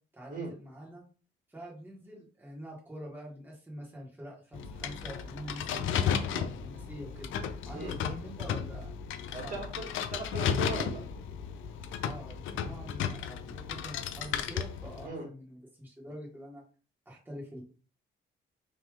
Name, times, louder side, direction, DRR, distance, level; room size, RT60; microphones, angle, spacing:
voice 1, 0.1-1.0 1.5-7.3 7.6-8.9 9.4-9.6 12.0-16.6 17.0-17.6, equal, 10° right, -3 dB, 1.7 m, -45 dB
sound 1, 4.5-15.1, left 8 dB, 80° left, 0.5 m, -34 dB
voice 2, 9.3-11.0 15.0-15.3, right 2 dB, 40° right, -1 dB, 1.9 m, -38 dB
3.3 x 2.9 x 3.6 m, 0.37 s
cardioid pair, 90°, 20 cm